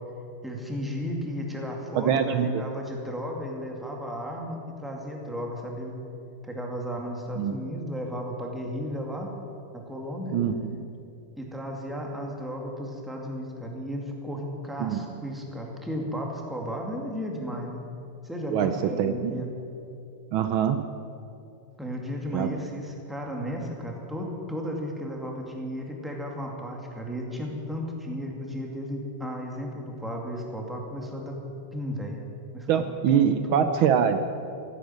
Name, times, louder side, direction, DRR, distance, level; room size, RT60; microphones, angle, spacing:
voice 1, 0.4-6.0 6.4-9.3 9.7-10.4 11.4-17.8 18.2-19.5 21.8-32.2 32.5-32.8 33.1-33.7, equal, ahead, 0 dB, 2.1 m, -34 dB
voice 2, 1.9-2.5 7.4-7.6 10.3-10.8 14.8-15.2 18.5-18.7 19.0-19.3 20.3-20.8 22.3-22.5 32.7-34.2, right 8 dB, 75° right, 8 dB, 1.5 m, -24 dB
15.5 x 10.0 x 9.3 m, 2.6 s
omnidirectional pair, 2.4 m